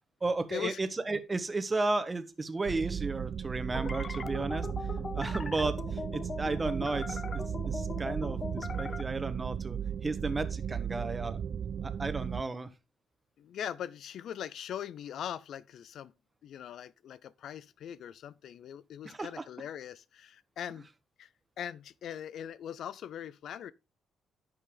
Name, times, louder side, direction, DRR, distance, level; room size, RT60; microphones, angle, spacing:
voice 1, 0.2-4.7 5.1-11.4 11.8-12.7 19.0-19.4, right 3 dB, 25° right, 1.5 m, -34 dB
sound 1, 2.6-12.4, right 8 dB, 55° right, 0.5 m, -36 dB
sound 2, 3.7-9.0, left 4 dB, 35° left, 0.7 m, -40 dB
voice 2, 13.4-16.1 16.4-20.9 21.2-23.7, left 9 dB, 70° left, 0.5 m, -41 dB
11.0 x 6.8 x 3.8 m
cardioid pair, 90°, 0 cm